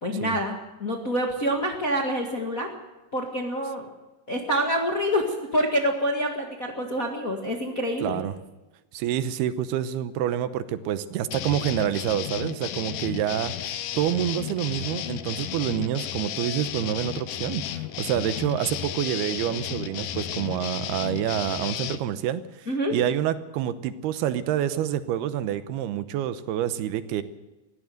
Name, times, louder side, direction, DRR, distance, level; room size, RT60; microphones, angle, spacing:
voice 1, 0.0-2.7 3.1-3.8 4.3-8.2 22.7-22.9, equal, 35° left, 1 dB, 1.3 m, -27 dB
voice 2, 8.0-8.3 8.9-27.2, right 11 dB, 80° right, 12 dB, 2.8 m, -27 dB
sound 1, 11.3-22.0, left 11 dB, 70° left, 2.2 m, -33 dB
21.5 x 16.0 x 7.8 m, 1.1 s
omnidirectional pair, 4.7 m